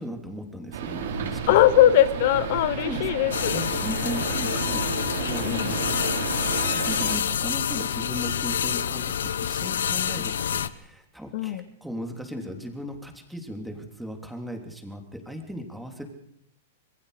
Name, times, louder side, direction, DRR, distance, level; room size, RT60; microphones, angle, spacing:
voice 1, 0.0-1.6 2.8-3.0 3.5-4.9 5.3-6.0 6.7-16.0, equal, ahead, 3 dB, 3.3 m, -37 dB
sound 1, 0.7-7.2, right 7 dB, 70° right, 5.2 m, -32 dB
voice 2, 1.5-3.6 5.5-5.7 11.3-11.6, left 12 dB, 55° left, 14 dB, 1.0 m, -20 dB
sound 2, 3.3-10.7, left 8 dB, 90° left, 1.0 m, -27 dB
26.5 x 21.5 x 5.1 m, 0.72 s
hypercardioid pair, 145°, 0 cm